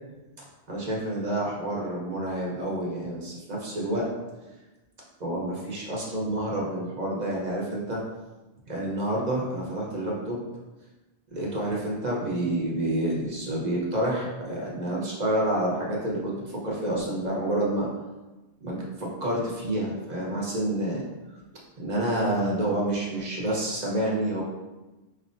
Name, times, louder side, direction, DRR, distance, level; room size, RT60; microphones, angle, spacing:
voice 1, 0.7-4.1 5.2-8.0 8.7-10.4 11.3-16.3 16.6-17.9 18.6-21.0 21.8-24.4, right 1 dB, 40° right, -4 dB, 1.1 m, -28 dB
5.4 x 2.9 x 2.5 m, 1.1 s
omnidirectional pair, 1.1 m